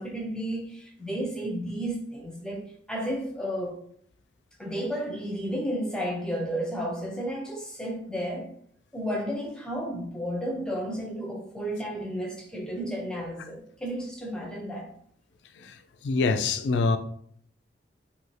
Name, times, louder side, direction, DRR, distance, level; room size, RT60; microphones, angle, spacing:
voice 1, 0.0-2.6 2.9-3.8 4.6-8.5 8.9-14.9, equal, 5° left, 0.5 m, -32 dB
voice 2, 16.0-17.0, left 4 dB, 70° left, 0.3 m, -25 dB
2.7 x 2.6 x 3.1 m
head